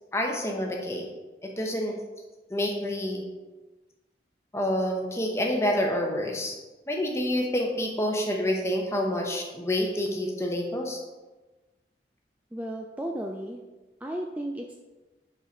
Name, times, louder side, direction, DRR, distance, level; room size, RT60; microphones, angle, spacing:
voice 1, 0.1-1.1 1.4-2.0 2.5-3.2 4.5-6.5 6.9-11.0, left 1 dB, 15° left, 1 dB, 0.8 m, -28 dB
voice 2, 12.5-13.6 14.0-14.7, right 1 dB, 10° right, 1 dB, 0.3 m, -34 dB
5.5 x 4.8 x 5.0 m, 1.2 s
head